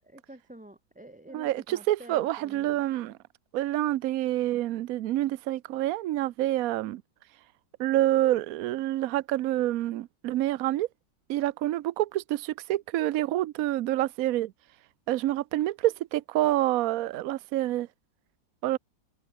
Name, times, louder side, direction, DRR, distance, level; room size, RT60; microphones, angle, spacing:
voice 1, 0.0-2.8, right 1 dB, 5° right, 1.5 m, -48 dB
voice 2, 1.3-3.1 3.5-7.0 7.8-10.9 11.3-14.5 15.1-17.9 18.6-18.8, right 14 dB, 70° right, 0.8 m, -27 dB
open air
omnidirectional pair, 2.0 m